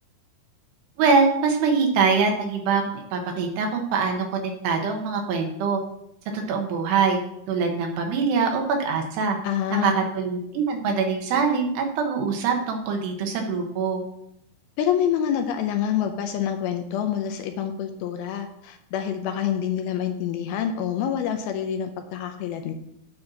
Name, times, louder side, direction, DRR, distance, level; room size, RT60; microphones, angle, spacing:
voice 1, 1.0-5.8 6.3-7.2 7.5-9.4 9.8-14.0, right 5 dB, 80° right, 3 dB, 3.3 m, -23 dB
voice 2, 9.4-10.0 14.8-22.7, left 9 dB, 80° left, 6 dB, 2.3 m, -27 dB
9.5 x 4.4 x 6.2 m, 0.78 s
omnidirectional pair, 4.8 m